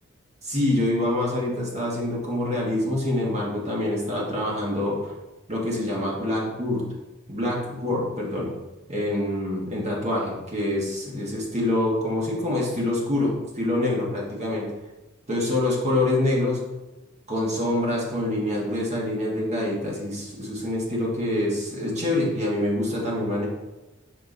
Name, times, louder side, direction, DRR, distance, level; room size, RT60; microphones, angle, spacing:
voice 1, 0.4-5.1 5.5-6.8 7.3-8.5 8.9-14.6 15.3-16.6 17.3-23.5, left 1 dB, 35° right, -3 dB, 1.7 m, -26 dB
6.0 x 4.5 x 4.0 m, 1.1 s
head